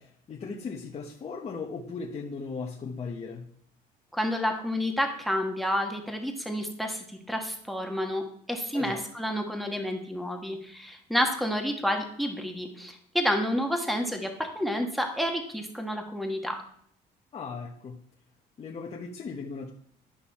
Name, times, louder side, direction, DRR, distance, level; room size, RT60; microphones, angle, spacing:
voice 1, 0.0-3.5 8.7-9.0 17.3-18.0 18.6-19.7, left 4 dB, 40° left, -1 dB, 1.1 m, -37 dB
voice 2, 4.1-8.2 8.5-16.6, equal, ahead, 4 dB, 1.5 m, -29 dB
11.5 x 5.4 x 4.2 m, 0.63 s
cardioid pair, 110°, 17 cm